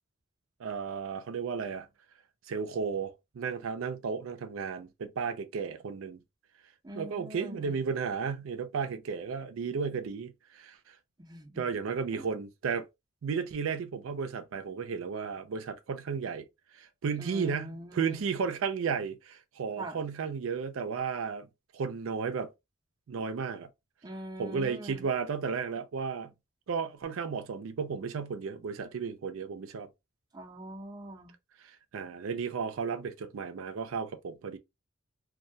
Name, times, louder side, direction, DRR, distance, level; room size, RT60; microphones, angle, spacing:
voice 1, 0.6-1.9 2.5-6.2 6.9-10.8 11.6-12.8 13.2-16.5 16.7-21.5 21.7-22.5 23.1-23.7 24.4-26.3 26.7-29.9 31.6-34.6, right 6 dB, 80° right, 0.4 m, -34 dB
voice 2, 6.8-7.8 11.2-11.7 12.1-12.2 17.2-18.2 19.8-20.0 24.0-25.1 30.3-31.3, right 1 dB, 20° right, 0.5 m, -43 dB
2.2 x 2.1 x 2.6 m
head